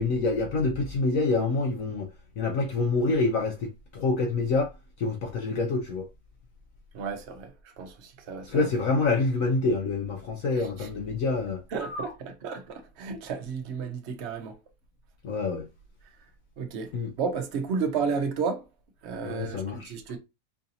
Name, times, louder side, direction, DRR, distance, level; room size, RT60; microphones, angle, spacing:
voice 1, 0.0-2.1 2.4-4.7 5.0-6.1 8.5-12.1 15.2-15.7 16.9-17.1 19.2-19.9, left 3 dB, 65° left, 0.8 m, -27 dB
voice 2, 6.9-8.7 10.5-10.9 11.7-14.6 16.6-16.9 17.2-18.7 19.0-20.2, right 5 dB, 55° right, 0.8 m, -32 dB
4.7 x 2.7 x 2.7 m
omnidirectional pair, 2.0 m